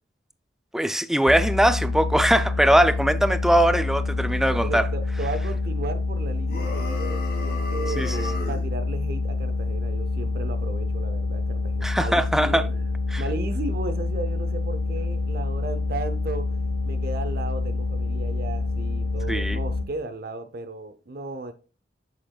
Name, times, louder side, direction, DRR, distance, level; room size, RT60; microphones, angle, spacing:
voice 1, 0.7-4.9 8.0-8.3 11.8-12.7 13.1-13.2 19.3-19.6, right 1 dB, ahead, 0.3 m, -21 dB
sound 1, 1.3-19.8, left 3 dB, 80° left, 0.8 m, -27 dB
voice 2, 4.6-12.8 13.2-16.5 16.8-21.5, right 3 dB, 55° right, 0.6 m, -35 dB
sound 2, 6.5-8.7, left 2 dB, 60° left, 2.3 m, -34 dB
7.5 x 6.5 x 2.3 m
head